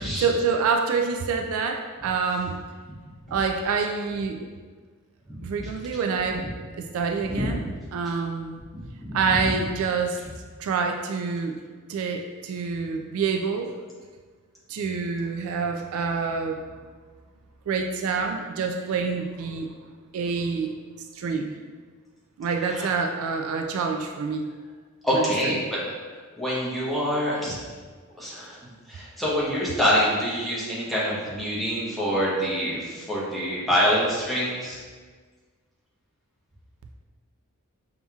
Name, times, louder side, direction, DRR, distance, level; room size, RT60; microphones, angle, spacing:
voice 1, 0.0-2.6 3.3-4.5 5.4-6.4 6.7-7.6 7.9-8.5 9.1-10.2 10.6-11.6 11.9-13.7 14.7-16.6 17.7-19.7 20.1-20.7 21.1-21.5 22.4-24.5 25.1-25.5, right 5 dB, 65° right, 4 dB, 0.3 m, -27 dB
voice 2, 8.7-9.1 22.7-22.9 25.0-25.8 26.4-27.5 28.2-28.6 28.9-34.8, equal, ahead, -8 dB, 0.9 m, -25 dB
5.5 x 2.8 x 2.3 m, 1.5 s
head